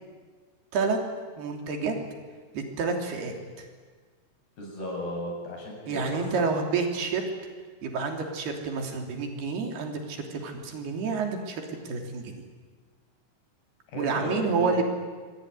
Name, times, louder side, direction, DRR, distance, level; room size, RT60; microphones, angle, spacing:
voice 1, 1.4-1.9 2.5-3.7 5.9-7.2 7.8-12.3 14.0-14.9, right 4 dB, 80° right, 3 dB, 5.2 m, -29 dB
voice 2, 4.6-6.5 13.9-14.8, left 1 dB, 85° left, 0 dB, 9.2 m, -35 dB
26.5 x 22.0 x 9.9 m, 1.5 s
omnidirectional pair, 4.5 m